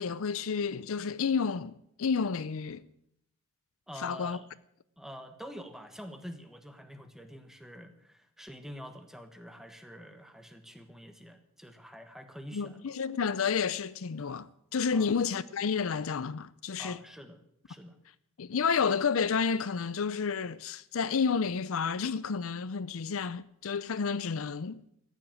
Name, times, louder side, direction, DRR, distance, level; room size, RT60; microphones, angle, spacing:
voice 1, 0.0-2.8 4.0-4.4 12.5-17.0 18.4-24.8, left 5 dB, 65° left, 0.5 m, -30 dB
voice 2, 3.9-4.5 5.0-12.9 14.9-15.1 16.8-17.4 17.7-18.0, equal, ahead, 1.3 m, -46 dB
15.0 x 9.1 x 9.1 m
head